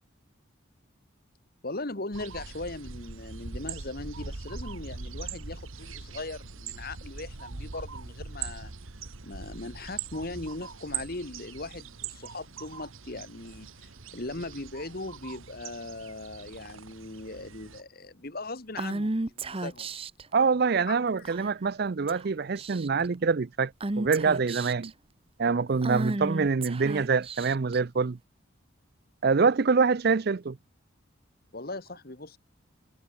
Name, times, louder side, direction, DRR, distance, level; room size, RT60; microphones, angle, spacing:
voice 1, 1.6-8.7 9.2-19.9 20.9-21.3 31.5-32.4, left 2 dB, 45° left, 1.8 m, -39 dB
sound 1, 2.1-17.8, right 5 dB, 80° right, 1.5 m, -41 dB
Female speech woman speaking / Whispering, 18.8-20.2 21.2-21.7 22.1-22.2 22.5-23.1 23.8-24.9 25.8-27.8, right 2 dB, 25° right, 0.8 m, -33 dB
voice 2, 20.3-24.9 25.4-28.2 29.2-30.6, right 5 dB, 50° right, 0.5 m, -25 dB
head